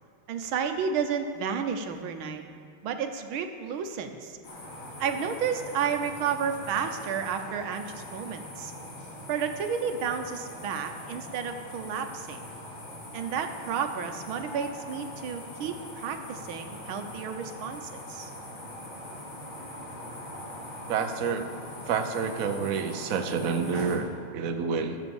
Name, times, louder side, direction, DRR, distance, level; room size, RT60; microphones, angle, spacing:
voice 1, 0.3-2.4 2.8-4.4 5.0-8.7 9.3-12.4 13.1-18.3, right 7 dB, 75° right, 7 dB, 1.7 m, -31 dB
sound 1, 4.4-24.0, left 1 dB, 70° left, 3.3 m, -42 dB
voice 2, 20.9-21.5 21.9-25.0, right 6 dB, 60° right, 6 dB, 0.9 m, -29 dB
14.0 x 7.4 x 7.1 m, 2.3 s
omnidirectional pair, 2.3 m